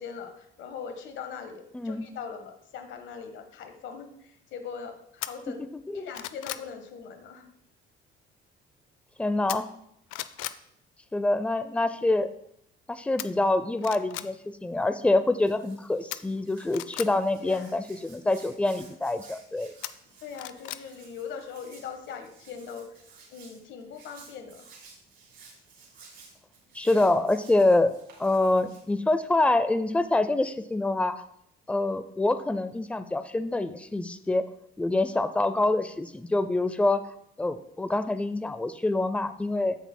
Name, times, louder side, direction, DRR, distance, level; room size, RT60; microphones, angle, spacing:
voice 1, 0.0-5.6 5.9-7.5 17.4-17.7 20.2-23.0 23.3-24.7, left 6 dB, 70° left, 5 dB, 1.4 m, -41 dB
sound 1, 5.2-5.3 5.8-6.7 9.5-9.8 10.1-10.6 13.2-13.3 13.8-14.3 16.1-17.1 19.8-20.8 21.2-21.3, left 15 dB, 90° left, 0.4 m, -36 dB
voice 2, 9.2-9.7 11.1-12.3 12.9-19.7 26.7-27.9 28.2-31.2 31.7-34.4 34.8-37.0 37.4-39.8, left 2 dB, 5° left, 11 dB, 0.5 m, -26 dB
Hands, 14.7-29.3, right 4 dB, 65° right, 3.5 m, -55 dB
15.5 x 5.7 x 2.2 m, 0.74 s
cardioid pair, 95°, 20 cm